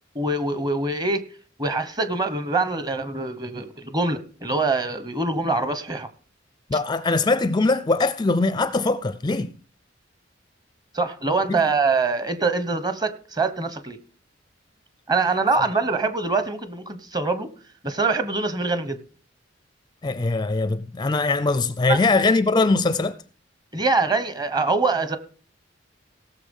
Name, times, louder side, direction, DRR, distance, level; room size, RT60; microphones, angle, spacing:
voice 1, 0.1-1.2 1.6-6.1 10.9-14.0 15.1-17.5 17.8-19.0 21.9-22.0 23.7-25.2, right 3 dB, 20° right, 1.1 m, -24 dB
voice 2, 6.7-9.5 11.5-11.6 20.0-23.2, left 3 dB, 20° left, 0.4 m, -21 dB
17.0 x 6.8 x 5.4 m
head